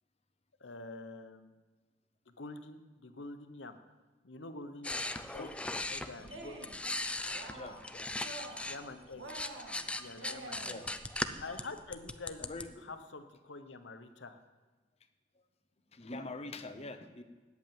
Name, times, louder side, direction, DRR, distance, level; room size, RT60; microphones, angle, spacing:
voice 1, 0.6-1.6 2.3-3.8 4.2-6.4 8.6-9.3 10.0-10.8 11.4-12.5 12.8-14.4, left 3 dB, 75° left, 9 dB, 1.0 m, -47 dB
sound 1, 4.8-8.8 9.1-12.6, left 2 dB, 5° left, 0.5 m, -39 dB
voice 2, 6.2-6.7 7.5-8.1 10.6-10.9 12.4-12.8 15.3-15.4 15.9-17.2, left 2 dB, 35° left, 8 dB, 0.9 m, -45 dB
Cheering, 6.2-6.8 7.2-7.9 8.2-8.8 9.2-10.9, right 2 dB, 90° right, 1.9 m, -48 dB
9.2 x 8.3 x 8.9 m, 1.3 s
head